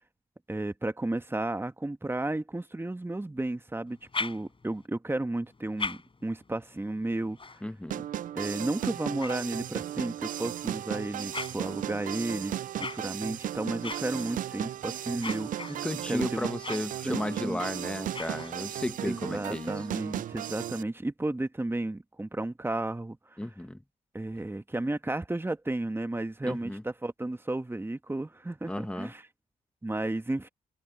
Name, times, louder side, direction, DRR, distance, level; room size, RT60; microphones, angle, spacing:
voice 1, 0.5-7.4 8.3-12.5 12.8-16.5 17.0-17.6 19.0-23.4 24.1-29.2 29.8-30.5, right 2 dB, 15° right, 1.5 m, -33 dB
sound 1, 3.9-4.9 5.5-10.1 10.7-18.9, left 4 dB, 35° left, 4.5 m, -42 dB
voice 2, 7.6-8.0 15.7-19.7 23.4-23.8 26.4-26.8 28.7-29.1, left 1 dB, 5° left, 1.1 m, -34 dB
sound 2, 7.9-20.8, right 11 dB, 65° right, 0.4 m, -35 dB
supercardioid pair, 50°, 15 cm